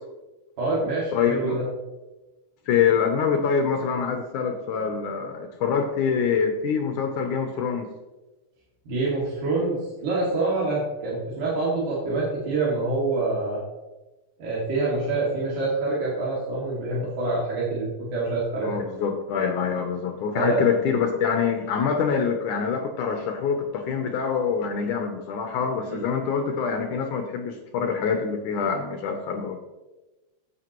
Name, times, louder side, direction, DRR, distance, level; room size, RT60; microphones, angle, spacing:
voice 1, 0.6-1.7 8.9-13.6 14.4-18.8 20.3-20.6 25.9-26.1, right 3 dB, 55° right, -7 dB, 3.6 m, -26 dB
voice 2, 1.1-1.6 2.7-7.9 18.6-29.6, left 6 dB, 75° left, 4 dB, 1.9 m, -25 dB
14.5 x 8.1 x 3.0 m, 1.1 s
omnidirectional pair, 4.4 m